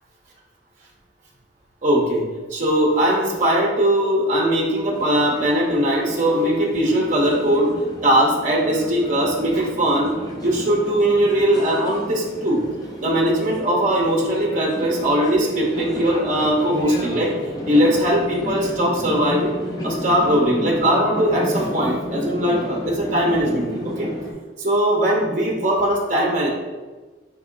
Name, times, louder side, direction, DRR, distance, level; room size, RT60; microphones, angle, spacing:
voice 1, 1.8-7.7 8.0-10.1 10.4-12.6 13.0-17.3 17.7-19.6 19.8-24.1 24.6-26.5, right 1 dB, 40° right, -2 dB, 0.7 m, -20 dB
sound 1, 4.9-24.3, left 1 dB, 20° left, 0.5 m, -32 dB
4.1 x 3.0 x 3.7 m, 1.3 s
head